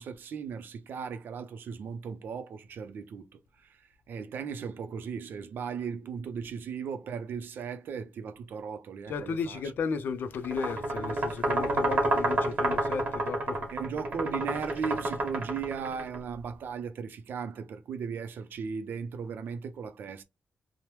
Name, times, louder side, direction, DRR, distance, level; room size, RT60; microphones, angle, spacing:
voice 1, 0.0-3.8 4.1-9.6 13.7-20.2, right 6 dB, 85° right, 0.4 m, -37 dB
voice 2, 9.1-13.7, left 5 dB, 80° left, 0.4 m, -34 dB
sound 1, 10.4-16.2, right 2 dB, 50° right, 1.1 m, -29 dB
3.0 x 2.0 x 3.1 m
wide cardioid pair, 175°, 3 cm